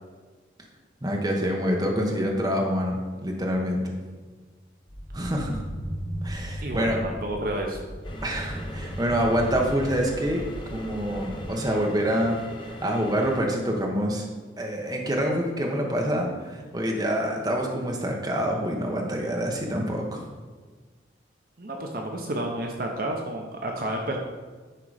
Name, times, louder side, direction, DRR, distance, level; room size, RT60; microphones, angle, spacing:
voice 1, 1.0-4.0 5.1-5.6 6.2-7.0 8.2-14.3 14.6-20.3, equal, 20° right, 0 dB, 0.9 m, -26 dB
sound 1, 4.9-11.5, equal, 65° left, 2.3 m, -36 dB
voice 2, 6.6-7.8 21.6-24.2, right 1 dB, 50° right, 1 dB, 0.7 m, -30 dB
sound 2, 8.0-13.4, equal, 25° left, 0.7 m, -40 dB
10.0 x 3.8 x 4.9 m, 1.4 s
head